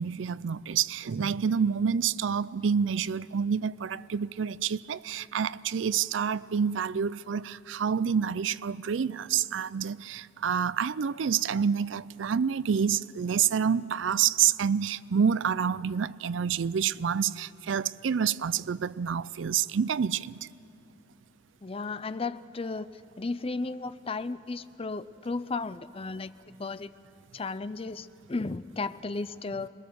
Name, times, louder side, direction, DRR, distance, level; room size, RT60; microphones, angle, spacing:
voice 1, 0.0-20.5, right 7 dB, 85° right, 0.4 m, -28 dB
voice 2, 21.6-22.9 23.2-26.9 27.3-29.7, left 3 dB, 30° left, 0.5 m, -34 dB
26.5 x 21.5 x 6.9 m
head